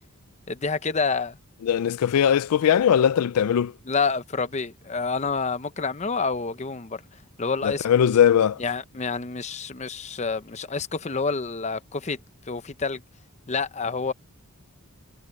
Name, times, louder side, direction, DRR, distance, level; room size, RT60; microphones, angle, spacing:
voice 1, 0.5-1.4 3.9-7.0 7.4-7.9 8.6-12.2 12.5-13.0 13.5-14.1, left 4 dB, 30° left, 0.7 m, -28 dB
voice 2, 1.6-3.7 7.6-8.6, left 9 dB, 85° left, 0.4 m, -20 dB
head